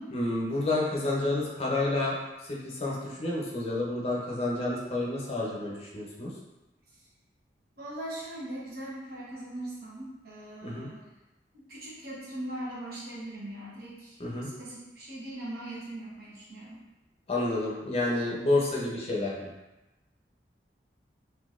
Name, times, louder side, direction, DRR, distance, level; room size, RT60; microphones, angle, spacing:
voice 1, 0.1-2.1 2.4-6.3 10.6-10.9 14.2-14.5 17.3-19.5, left 2 dB, 35° left, -3 dB, 0.6 m, -29 dB
voice 2, 7.8-11.0 11.5-16.8, right 1 dB, 60° right, -6 dB, 1.0 m, -40 dB
3.9 x 2.7 x 2.4 m, 1.0 s
head